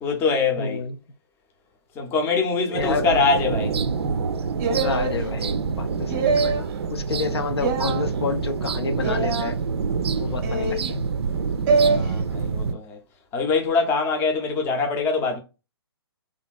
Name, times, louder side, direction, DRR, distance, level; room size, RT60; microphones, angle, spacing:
voice 1, 0.0-0.8 2.0-3.8 10.1-10.4 11.8-13.0 13.3-15.4, left 4 dB, 15° left, 0.5 m, -24 dB
voice 2, 0.6-1.0 2.6-3.1 4.7-9.6 10.2-11.0, left 4 dB, 70° left, 0.5 m, -29 dB
sound 1, 2.7-12.7, right 5 dB, 70° right, 0.4 m, -27 dB
sound 2, 4.6-5.2 6.1-6.7 7.6-8.0 9.0-9.5 10.4-10.9 11.7-12.0, right 4 dB, 30° right, 0.6 m, -23 dB
2.8 x 2.5 x 2.2 m
figure-of-eight pair, 130°, 14 cm